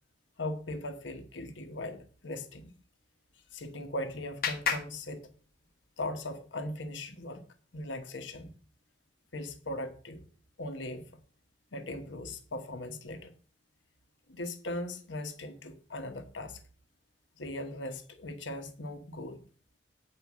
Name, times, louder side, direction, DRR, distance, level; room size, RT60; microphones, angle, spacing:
voice 1, 0.4-2.7 3.5-5.3 6.0-7.4 7.7-8.5 9.3-10.3 10.6-11.1 11.7-13.3 14.3-16.6 17.4-19.4, left 1 dB, 70° left, 1.1 m, -39 dB
Clapping, 3.3-5.9, left 6 dB, 50° left, 1.1 m, -37 dB
8.4 x 4.9 x 6.1 m
head